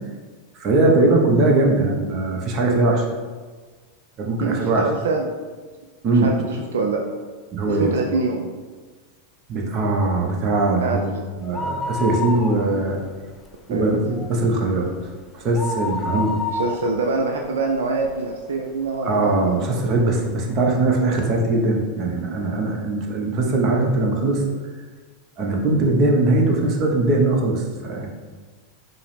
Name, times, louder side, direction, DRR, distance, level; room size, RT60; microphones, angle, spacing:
voice 1, 0.6-3.1 4.2-4.9 6.0-6.3 7.5-7.9 9.5-11.1 11.4-13.0 13.7-14.9 15.3-16.3 19.0-24.4 25.4-28.1, right 2 dB, 40° right, 0 dB, 0.8 m, -20 dB
voice 2, 4.4-5.3 6.0-7.0 7.7-8.5 10.8-11.2 13.7-13.9 16.1-19.3, right 3 dB, 80° right, 1 dB, 0.3 m, -25 dB
sound 1, 11.4-13.1 13.4-13.5 13.9-18.3 18.9-19.0 19.7-19.8 20.1-20.2, left 3 dB, 20° left, 0.3 m, -29 dB
4.6 x 2.1 x 3.2 m, 1.4 s
hypercardioid pair, 100°, 0 cm